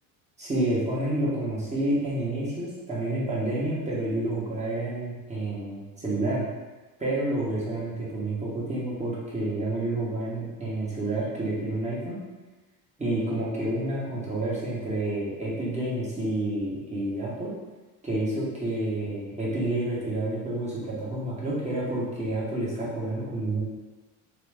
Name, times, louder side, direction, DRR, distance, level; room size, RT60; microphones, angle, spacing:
voice 1, 0.4-6.4 7.0-12.2 13.0-17.5 18.0-23.6, right 1 dB, 15° right, -6 dB, 1.1 m, -29 dB
2.9 x 2.3 x 3.4 m, 1.2 s
supercardioid pair, 100°, 39 cm